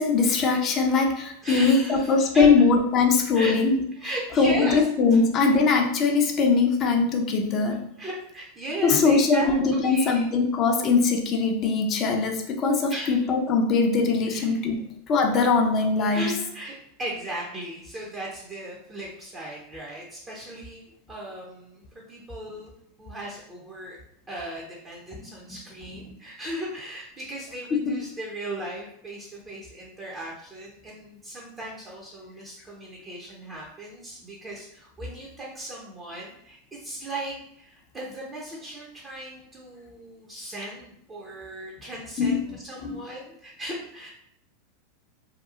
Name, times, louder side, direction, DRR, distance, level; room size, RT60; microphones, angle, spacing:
voice 1, 0.0-3.8 4.4-7.8 8.8-16.3 27.7-28.0 42.2-42.5 42.8-43.0, left 4 dB, 40° left, 4 dB, 0.5 m, -21 dB
voice 2, 1.4-2.5 3.3-3.5 3.9-4.8 5.1-5.5 8.0-9.6 9.8-10.3 12.9-13.3 14.3-14.8 16.1-22.7 23.0-24.0 24.3-44.1, right 1 dB, 25° right, -4 dB, 0.7 m, -37 dB
2.8 x 2.3 x 2.4 m, 0.74 s
hypercardioid pair, 95°, 0 cm